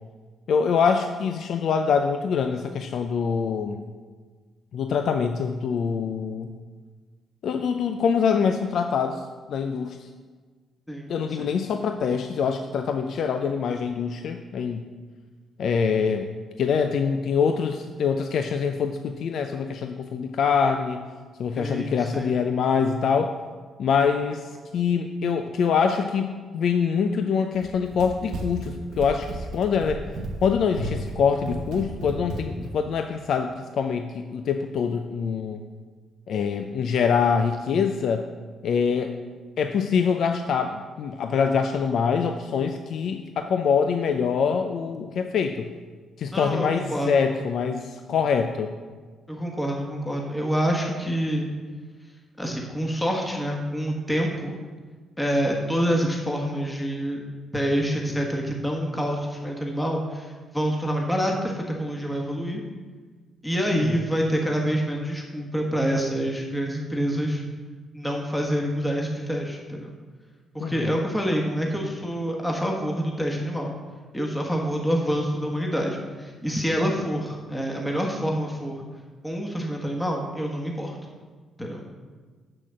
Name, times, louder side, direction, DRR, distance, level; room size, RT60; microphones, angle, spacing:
voice 1, 0.5-3.8 4.7-6.5 7.4-9.2 9.5-10.1 11.1-14.8 15.6-16.3 16.6-21.0 21.4-23.3 23.8-30.1 30.4-35.6 36.3-38.3 38.6-39.1 39.6-45.7 46.2-48.7 63.7-64.0 70.6-71.0, left 6 dB, 65° left, 6 dB, 0.5 m, -24 dB
voice 2, 21.5-22.3 46.3-47.2 49.3-51.5 52.4-54.6 55.2-57.2 57.5-62.6 63.4-67.4 67.9-69.9 70.5-73.7 74.1-78.8 79.2-81.0 81.6-81.8, equal, 10° left, 0 dB, 1.4 m, -27 dB
Run, 27.5-32.8, right 1 dB, 80° right, 0.9 m, -34 dB
6.7 x 6.1 x 7.5 m, 1.4 s
cardioid pair, 75°, 0 cm